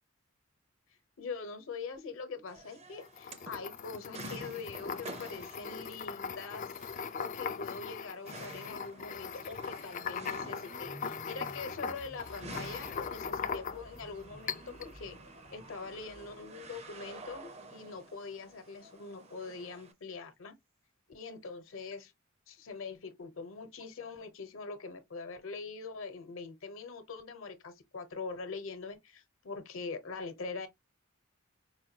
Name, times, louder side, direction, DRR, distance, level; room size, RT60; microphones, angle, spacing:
voice 1, 1.2-6.7 7.2-15.2 15.5-20.5 21.1-22.1 22.5-30.7, left 4 dB, 75° left, 0.9 m, -43 dB
sound 1, 2.5-19.9, right 2 dB, 30° right, 0.6 m, -51 dB
sound 2, 3.0-14.0 14.5-14.9, left 6 dB, 40° left, 0.3 m, -40 dB
sound 3, 9.3-18.3 18.6-18.8 19.1-19.5, right 1 dB, 85° right, 2.2 m, -55 dB
4.7 x 2.3 x 2.7 m
head